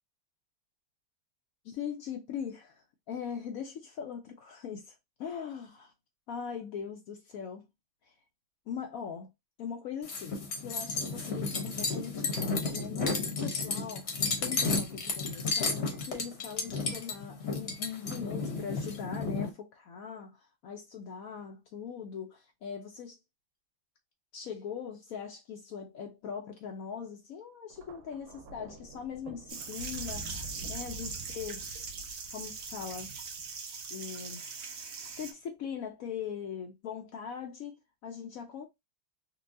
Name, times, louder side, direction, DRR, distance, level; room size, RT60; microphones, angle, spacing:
voice 1, 1.6-4.9 5.2-5.9 6.3-7.7 8.1-8.2 8.7-9.3 9.6-23.2 24.3-30.3 30.7-31.6 32.3-33.1 33.9-34.4 35.2-38.7, left 7 dB, 85° left, 0.7 m, -41 dB
sound 1, 10.0-19.5, left 3 dB, 50° left, 0.8 m, -32 dB
Thunder, 27.7-34.1 35.0-35.3, right 1 dB, 80° right, 1.7 m, -47 dB
sound 2, 29.5-35.3, right 5 dB, 60° right, 0.9 m, -41 dB
4.3 x 2.2 x 2.6 m
omnidirectional pair, 2.2 m